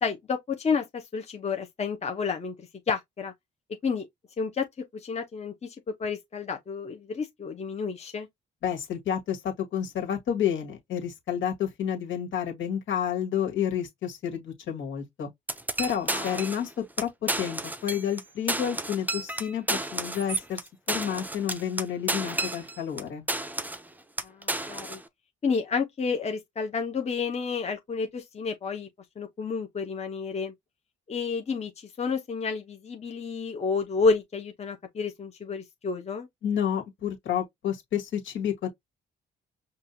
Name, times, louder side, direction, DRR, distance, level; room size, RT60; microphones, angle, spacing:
voice 1, 0.0-2.5 2.9-3.3 3.8-4.1 4.4-4.7 4.9-8.3 16.1-16.4 19.7-19.8 24.2-25.0 25.4-28.9 29.2-30.5 31.1-36.3, left 5 dB, 35° left, 0.9 m, -30 dB
voice 2, 8.6-15.3 15.8-20.6 20.9-23.2 36.4-38.7, left 9 dB, 75° left, 1.8 m, -30 dB
sound 1, 15.5-16.7 17.0-17.1 17.3-18.2 18.5-23.0 23.3-23.9 24.2-25.0, right 2 dB, 10° right, 0.5 m, -31 dB
5.4 x 2.5 x 2.7 m
cardioid pair, 90°, 20 cm